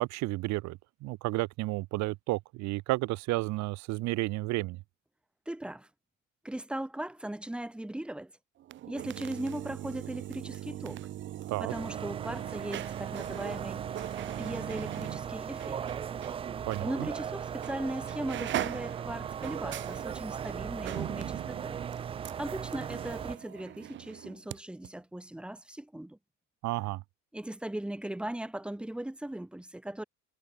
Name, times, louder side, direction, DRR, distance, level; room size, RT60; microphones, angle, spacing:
voice 1, 0.0-4.8 11.5-11.7 16.7-17.1 26.6-27.0, right 20 dB, 65° right, 1.7 m, -32 dB
voice 2, 5.5-5.9 6.4-8.3 8.9-11.0 11.6-13.8 14.4-15.9 16.8-21.8 22.4-26.2 27.3-30.0, right 1 dB, 5° right, 3.2 m, -38 dB
sound 1, 8.6-16.4 16.7-16.8 17.6-17.8 18.1-24.6 24.8-24.9, right 13 dB, 40° right, 1.0 m, -40 dB
sound 2, 11.7-23.4, right 8 dB, 20° right, 0.4 m, -38 dB
cardioid pair, 175°, 31 cm